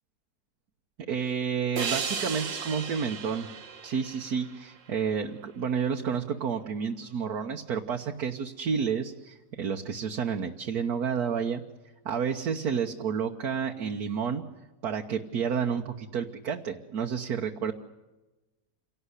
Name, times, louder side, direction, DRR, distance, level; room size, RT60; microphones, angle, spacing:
voice 1, 1.1-3.5 3.8-11.6 12.0-14.4 14.8-17.7, right 6 dB, 60° right, 3 dB, 1.6 m, -30 dB
sound 1, 1.8-5.1, right 6 dB, 85° right, 2.3 m, -35 dB
28.0 x 18.0 x 9.8 m, 1.1 s
omnidirectional pair, 1.9 m